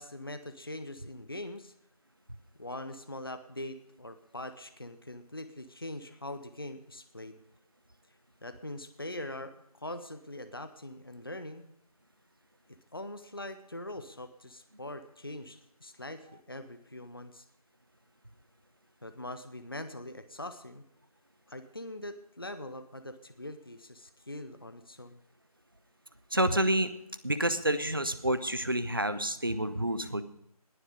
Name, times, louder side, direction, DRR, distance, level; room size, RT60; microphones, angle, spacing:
voice 1, 0.0-1.7 2.6-7.4 8.4-11.7 12.7-17.5 19.0-20.8 21.5-25.2, left 1 dB, 35° left, 10 dB, 0.9 m, -42 dB
voice 2, 26.3-26.9 27.2-30.2, right 1 dB, 35° right, 12 dB, 0.9 m, -28 dB
20.0 x 7.2 x 5.1 m, 0.72 s
figure-of-eight pair, 170°, 20 cm